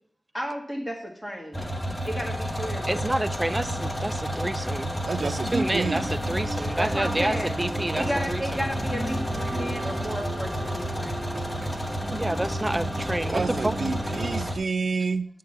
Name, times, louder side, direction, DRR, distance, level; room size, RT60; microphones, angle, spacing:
voice 1, 0.3-1.7 2.1-3.0 6.8-7.5 8.0-11.1, equal, ahead, 1.9 m, -33 dB
sound 1, 1.5-14.6, equal, 20° left, 1.5 m, -30 dB
voice 2, 2.9-8.6 12.1-13.8, right 1 dB, 20° right, 0.5 m, -29 dB
sound 2, 3.5-14.5, right 2 dB, 50° right, 0.9 m, -37 dB
voice 3, 5.0-6.1 13.3-15.3, right 4 dB, 70° right, 0.6 m, -28 dB
11.0 x 3.8 x 6.6 m
cardioid pair, 55°, 0 cm